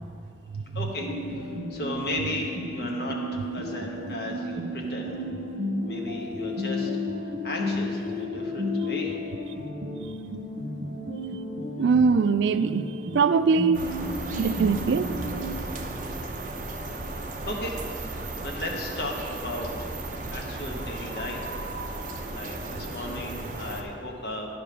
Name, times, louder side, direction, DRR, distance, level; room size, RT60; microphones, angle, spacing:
voice 1, 0.7-1.1 1.4-5.2 5.9-6.9 7.4-9.2 17.4-17.7 18.4-19.9 20.3-21.6 22.3-24.5, left 1 dB, 60° left, 0 dB, 1.2 m, -35 dB
sound 1, 1.0-15.5, left 1 dB, 65° right, 1.6 m, -33 dB
voice 2, 11.8-12.9 13.1-13.8 14.4-15.1, right 5 dB, 85° right, 13 dB, 0.3 m, -21 dB
sound 2, 13.7-23.8, right 2 dB, 45° right, 0.7 m, -35 dB
10.0 x 5.1 x 5.8 m, 2.6 s
head